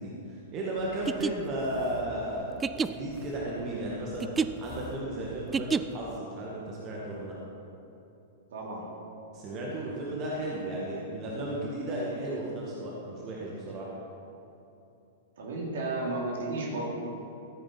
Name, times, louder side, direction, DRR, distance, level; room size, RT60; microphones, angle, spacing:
voice 1, 0.0-4.3 4.6-7.4 9.3-13.9, right 1 dB, 35° right, -4 dB, 1.9 m, -34 dB
sound 1, 0.9-6.2, right 5 dB, 15° right, 0.3 m, -31 dB
voice 2, 8.5-8.9 15.4-16.9, right 2 dB, 60° right, -3 dB, 2.7 m, -33 dB
14.5 x 8.8 x 4.2 m, 2.9 s
figure-of-eight pair, 100°, 0 cm